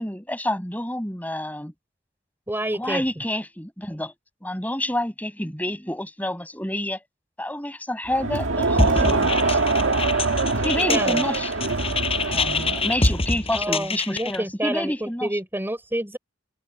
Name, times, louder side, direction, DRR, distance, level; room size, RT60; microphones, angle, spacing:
voice 1, 0.0-1.7 2.7-4.1 4.4-7.0 7.4-9.6 10.5-11.5 12.3-15.3, left 1 dB, 10° left, 6.1 m, -28 dB
voice 2, 2.5-3.0 10.9-11.2 13.5-16.2, right 1 dB, 10° right, 4.4 m, -28 dB
Crowd, 8.1-13.3, right 3 dB, 90° right, 1.8 m, -23 dB
sound 1, 8.8-14.4, left 3 dB, 30° left, 7.1 m, -26 dB
head